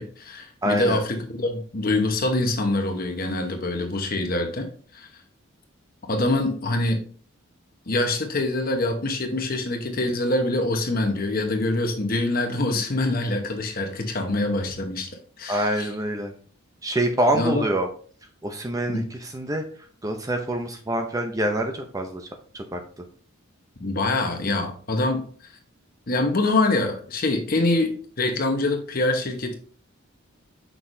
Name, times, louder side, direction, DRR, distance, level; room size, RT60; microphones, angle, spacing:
voice 1, 0.0-5.1 6.1-7.0 7.9-15.1 15.4-15.9 17.3-17.6 18.9-19.1 23.8-25.2 26.1-27.9 28.2-29.6, left 2 dB, 45° left, 4 dB, 1.0 m, -25 dB
voice 2, 0.6-1.0 15.5-16.3 16.8-17.9 18.4-19.6 20.0-22.3 22.5-22.8, right 1 dB, 15° right, 4 dB, 0.5 m, -26 dB
6.3 x 5.7 x 2.6 m, 0.44 s
head